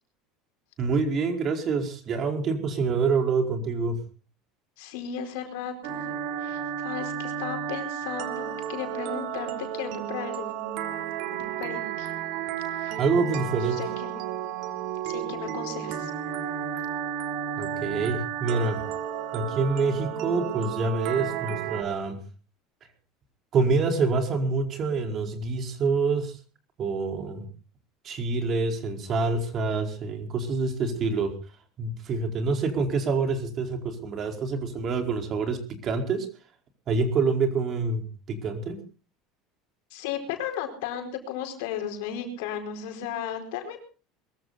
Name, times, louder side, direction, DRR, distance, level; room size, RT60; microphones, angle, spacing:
voice 1, 0.8-4.0 13.0-13.8 17.6-18.8 19.3-22.2 23.5-26.3 26.8-27.5 28.0-31.3 31.8-36.3 36.9-38.8, right 4 dB, 45° right, 5 dB, 4.7 m, -26 dB
voice 2, 4.8-6.0 6.4-10.6 11.3-12.1 12.7-14.2 15.0-16.1 39.9-43.8, left 8 dB, 75° left, 5 dB, 4.5 m, -35 dB
sound 1, 5.8-21.8, right 9 dB, 65° right, 3.1 m, -32 dB
22.0 x 14.0 x 4.2 m, 0.36 s
supercardioid pair, 105°, 0 cm